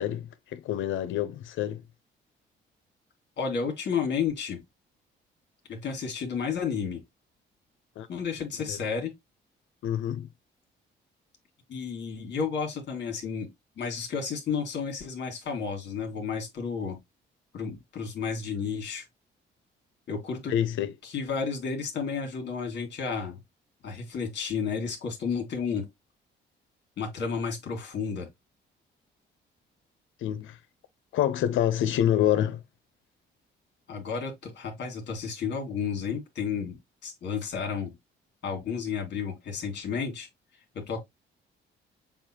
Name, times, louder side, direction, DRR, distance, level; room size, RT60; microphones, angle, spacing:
voice 1, 0.0-1.8 8.0-8.1 8.6-8.8 9.8-10.3 20.5-20.9 30.2-30.6 31.1-32.6, left 11 dB, 80° left, 0.7 m, -27 dB
voice 2, 3.4-4.6 5.7-7.0 8.1-9.1 11.7-13.5 13.8-17.0 17.5-19.0 20.1-20.5 21.0-23.4 23.8-25.9 27.0-28.3 33.9-36.8 37.0-37.9 38.4-40.3 40.7-41.0, left 6 dB, 60° left, 2.1 m, -32 dB
7.1 x 2.5 x 2.8 m
cardioid pair, 90°, 20 cm